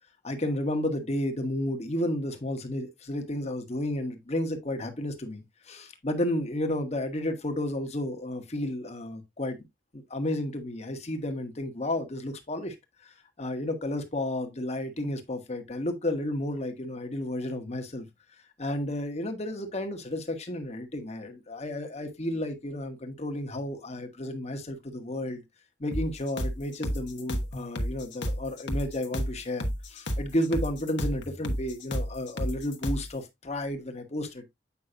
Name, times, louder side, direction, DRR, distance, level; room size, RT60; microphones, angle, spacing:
voice 1, 0.2-9.6 9.9-12.7 13.0-18.1 18.6-25.4 25.8-34.4, left 1 dB, 40° left, 1.2 m, -32 dB
sound 1, 25.9-33.1, equal, 85° left, 1.2 m, -32 dB
8.3 x 5.5 x 2.5 m
head